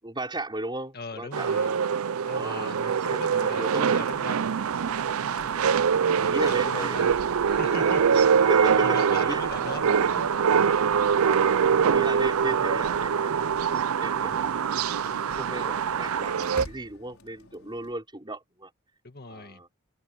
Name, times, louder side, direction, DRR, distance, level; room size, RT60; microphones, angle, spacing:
voice 1, 0.0-1.8 2.3-4.1 5.3-5.7 6.2-7.0 8.5-9.0 9.3-9.5 11.8-14.5 15.3-16.4 16.6-18.7 19.3-19.7, right 1 dB, 20° right, 5.1 m, -36 dB
voice 2, 0.9-1.7 2.2-4.5 5.9-7.1 7.4-8.1 8.8-10.3 11.2-11.3 14.1-14.4 19.0-19.6, left 3 dB, 45° left, 1.6 m, -40 dB
sound 1, 1.3-16.6, right 7 dB, 80° right, 0.5 m, -24 dB
sound 2, 2.7-17.9, left 1 dB, 75° left, 5.7 m, -47 dB
head